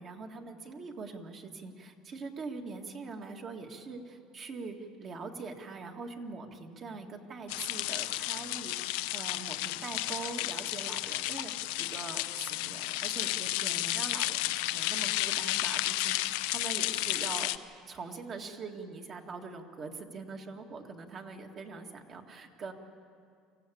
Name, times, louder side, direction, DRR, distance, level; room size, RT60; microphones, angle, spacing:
voice 1, 0.0-17.5 17.9-22.7, right 4 dB, 40° right, 3 dB, 1.9 m, -43 dB
sound 1, 7.5-17.6, left 17 dB, 85° left, 0.6 m, -32 dB
24.5 x 15.5 x 8.6 m, 2.3 s
cardioid pair, 135°, 0 cm